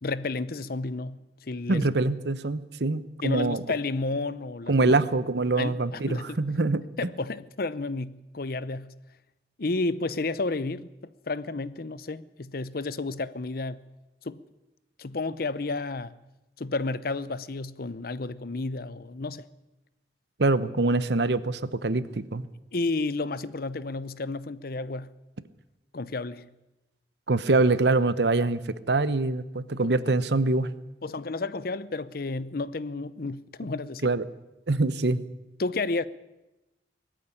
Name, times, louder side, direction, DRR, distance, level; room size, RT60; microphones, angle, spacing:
voice 1, 0.0-1.9 3.2-5.0 5.5-6.4 7.0-8.9 9.6-10.9 11.3-13.8 14.2-14.4 15.0-16.1 16.6-19.5 22.7-25.1 25.9-26.5 29.8-30.2 31.0-34.1 35.6-36.0, left 3 dB, 55° left, 0.7 m, -31 dB
voice 2, 1.7-3.6 4.7-6.8 20.4-22.5 27.3-28.6 28.9-30.7 34.0-34.2 34.7-35.2, right 2 dB, 70° right, 0.9 m, -24 dB
19.5 x 14.0 x 9.9 m
head